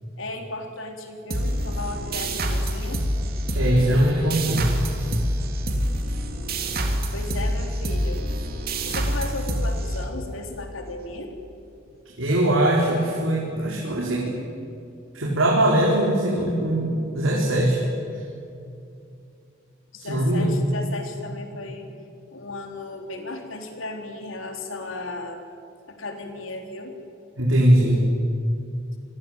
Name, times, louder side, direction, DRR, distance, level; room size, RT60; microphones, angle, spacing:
voice 1, 0.2-3.0 7.1-8.2 8.8-11.4 19.9-21.9 22.3-25.4 25.9-27.0, left 2 dB, 80° left, 4 dB, 3.8 m, -35 dB
sound 1, 1.3-10.5, equal, 50° right, 3.2 m, -26 dB
voice 2, 3.5-4.7 12.2-14.5 15.1-17.8 18.1-18.2 20.0-20.6 27.3-28.0, right 1 dB, 85° right, -3 dB, 4.6 m, -21 dB
27.5 x 20.5 x 9.0 m, 2.6 s
head